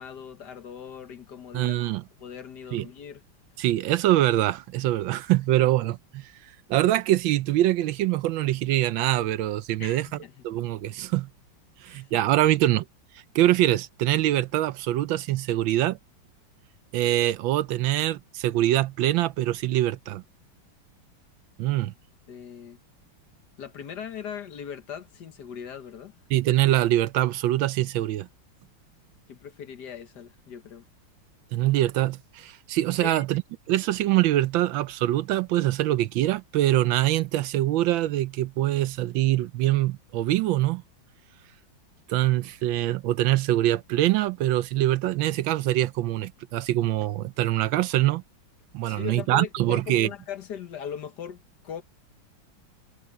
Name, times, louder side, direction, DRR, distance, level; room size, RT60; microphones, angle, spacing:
voice 1, 0.0-3.2 9.8-10.3 11.8-12.1 22.3-22.8 23.6-26.1 29.3-30.8 33.0-33.2 48.8-51.8, left 8 dB, 60° left, 1.6 m, -39 dB
voice 2, 1.5-2.0 2.7-2.9 3.6-6.3 6.7-10.1 10.4-11.3 11.8-12.8 13.3-16.0 16.9-20.2 21.6-21.9 26.3-28.3 31.5-33.4 33.7-40.8 42.1-48.2 48.7-50.1, right 14 dB, 75° right, 1.3 m, -24 dB
omnidirectional pair, 2.2 m